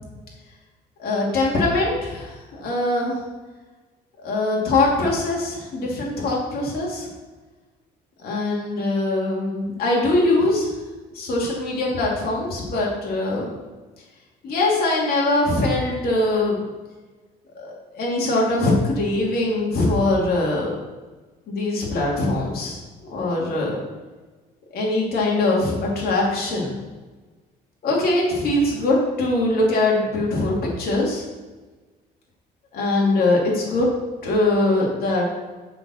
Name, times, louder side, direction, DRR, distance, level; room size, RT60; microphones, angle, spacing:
voice 1, 1.0-3.2 4.2-7.1 8.2-10.7 11.1-13.6 14.4-16.6 17.5-20.8 21.5-22.8 23.1-23.7 24.7-26.7 27.8-31.2 32.7-33.9 34.2-35.3, left 2 dB, 65° left, -3 dB, 2.5 m, -22 dB
7.6 x 4.5 x 6.2 m, 1.3 s
cardioid pair, 110°, 17 cm